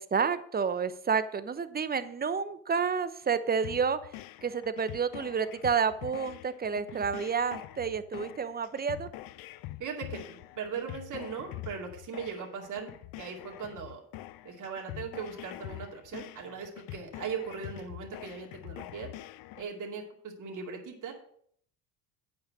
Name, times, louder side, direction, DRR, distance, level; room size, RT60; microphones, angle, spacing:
voice 1, 0.0-4.0 4.4-9.1, right 6 dB, 25° right, 13 dB, 0.8 m, -30 dB
sound 1, 3.6-19.6, left 16 dB, 60° left, 0.6 m, -45 dB
voice 2, 9.8-12.9 13.2-14.0 14.4-19.1 19.5-21.1, right 6 dB, 50° right, 0 dB, 2.5 m, -39 dB
8.7 x 5.8 x 6.3 m, 0.62 s
supercardioid pair, 70°, 40 cm